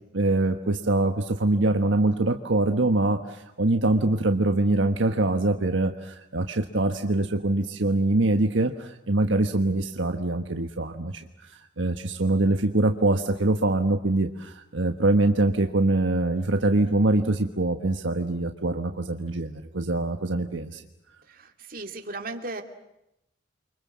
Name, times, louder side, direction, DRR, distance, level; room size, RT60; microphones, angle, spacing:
voice 1, 0.1-11.2 11.8-20.8, right 2 dB, 75° right, 5 dB, 1.4 m, -24 dB
voice 2, 21.2-22.6, right 2 dB, 50° right, 4 dB, 2.7 m, -36 dB
29.5 x 24.5 x 7.5 m, 0.85 s
head